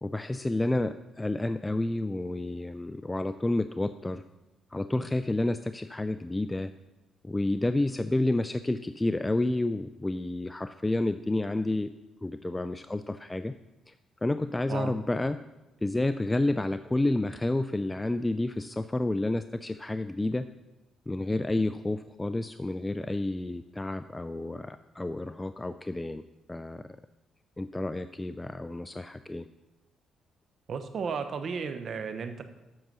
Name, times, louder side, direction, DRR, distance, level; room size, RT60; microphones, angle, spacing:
voice 1, 0.0-4.2 4.7-6.7 7.2-11.9 12.2-13.5 13.9-14.0 14.2-15.4 15.8-20.5 21.1-26.2 26.5-26.8 27.6-29.5, left 2 dB, 15° left, 11 dB, 0.3 m, -30 dB
voice 2, 30.7-32.4, right 5 dB, 55° right, 9 dB, 0.8 m, -34 dB
7.7 x 6.7 x 6.0 m, 1.0 s
cardioid pair, 90°, 0 cm